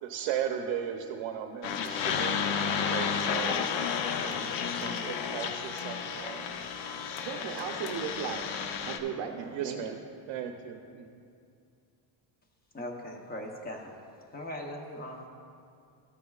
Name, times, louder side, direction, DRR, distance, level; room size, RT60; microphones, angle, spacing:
voice 1, 0.0-2.5 2.9-3.7 4.2-6.5 9.5-9.9 10.3-11.2, right 9 dB, 85° right, 5 dB, 0.8 m, -36 dB
sound 1, 1.6-9.0, left 6 dB, 75° left, 0.8 m, -32 dB
voice 2, 7.2-8.5 8.8-9.8, right 7 dB, 50° right, 0 dB, 0.6 m, -36 dB
voice 3, 12.7-13.9 14.3-15.3, left 1 dB, 20° left, 2 dB, 0.8 m, -39 dB
14.0 x 9.1 x 2.4 m, 2.4 s
cardioid pair, 160°, 46 cm